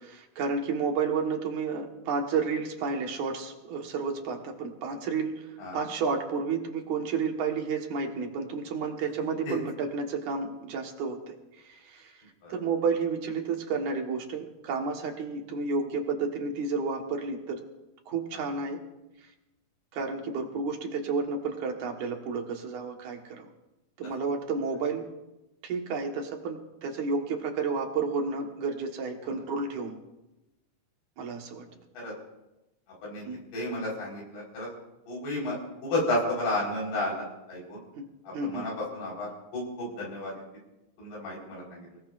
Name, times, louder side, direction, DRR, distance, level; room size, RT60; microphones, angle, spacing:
voice 1, 0.0-11.3 11.6-12.2 12.5-17.6 18.1-18.8 19.9-23.5 24.0-25.1 25.6-30.0 31.2-31.7 33.3-33.4 38.0-38.1 38.3-38.7, right 4 dB, 60° right, 2 dB, 2.6 m, -31 dB
voice 2, 31.7-32.1 33.0-33.3 33.5-34.7 35.1-37.8 38.2-40.4 41.0-42.0, left 1 dB, 85° left, -4 dB, 6.5 m, -33 dB
29.5 x 18.5 x 2.6 m, 0.97 s
omnidirectional pair, 4.4 m